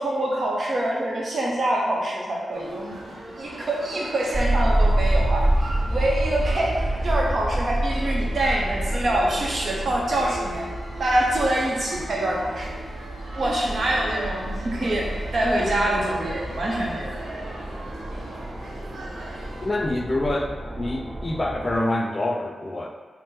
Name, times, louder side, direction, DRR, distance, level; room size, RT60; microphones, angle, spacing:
voice 1, 0.0-5.4 5.9-6.7 7.0-10.7 11.0-12.7 13.3-15.1 15.3-17.1, right 1 dB, 60° right, -2 dB, 0.8 m, -25 dB
sound 1, 2.5-19.7, right 1 dB, 90° right, 0.8 m, -39 dB
sound 2, 4.3-21.8, right 1 dB, 25° right, 0.5 m, -28 dB
voice 2, 19.6-22.9, left 1 dB, 30° left, 3 dB, 0.4 m, -26 dB
4.1 x 2.1 x 3.8 m, 1.4 s
cardioid pair, 55°, 0 cm